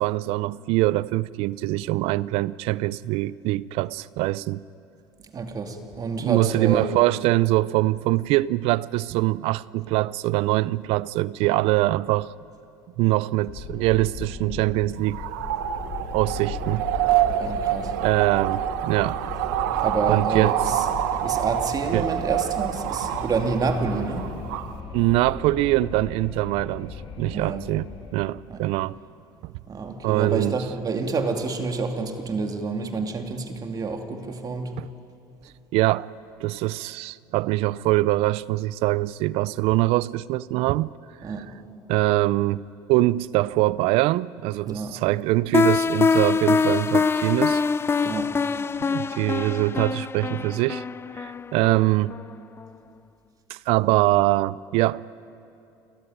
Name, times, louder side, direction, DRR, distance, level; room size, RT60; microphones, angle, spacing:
voice 1, 0.0-4.6 6.2-12.3 13.0-15.2 16.1-16.9 18.0-19.2 20.1-20.5 21.9-22.1 24.9-27.9 28.1-29.0 29.4-29.5 30.0-30.6 34.8-34.9 35.7-36.1 36.4-40.9 41.9-42.6 42.9-47.6 48.8-50.8 51.2-52.2 53.5-55.0, right 18 dB, 70° right, 0.5 m, -23 dB
voice 2, 5.3-6.9 17.4-17.9 19.8-20.9 21.2-24.3 27.3-27.7 28.5-28.6 29.7-34.7 41.2-41.5 44.7-45.0 48.0-48.3, right 4 dB, 40° right, 2.6 m, -28 dB
Wind, 13.5-28.8, left 5 dB, 55° left, 3.7 m, -37 dB
sound 1, 15.0-24.7, right 12 dB, 90° right, 1.1 m, -27 dB
sound 2, 45.5-52.3, left 5 dB, 25° left, 0.5 m, -24 dB
29.5 x 14.0 x 9.6 m
supercardioid pair, 95°, 10 cm